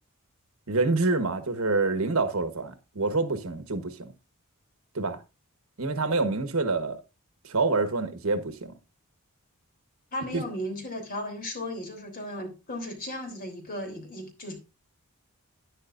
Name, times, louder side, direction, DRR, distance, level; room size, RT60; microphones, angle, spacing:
voice 1, 0.7-4.1 4.9-5.2 5.8-7.0 7.4-8.7 10.3-10.4, right 3 dB, 70° right, 1.3 m, -27 dB
voice 2, 10.1-14.6, left 1 dB, 40° left, 3.5 m, -35 dB
11.5 x 10.0 x 2.6 m
head